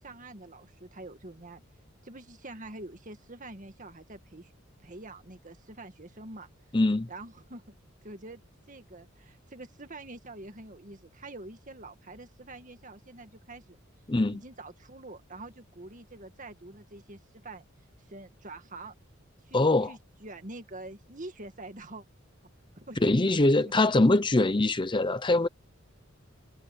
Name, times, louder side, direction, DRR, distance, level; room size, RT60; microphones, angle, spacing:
voice 1, 0.0-1.6 2.0-4.5 4.8-6.5 7.1-7.7 8.0-8.4 8.7-13.8 14.3-17.7 18.1-18.9 19.4-19.6 19.9-22.0 22.8-23.4 23.7-24.0 24.4-24.5, right 2 dB, 40° right, 2.0 m, -45 dB
voice 2, 6.7-7.1 14.1-14.4 19.5-19.9 23.0-25.5, left 2 dB, 25° left, 0.7 m, -23 dB
head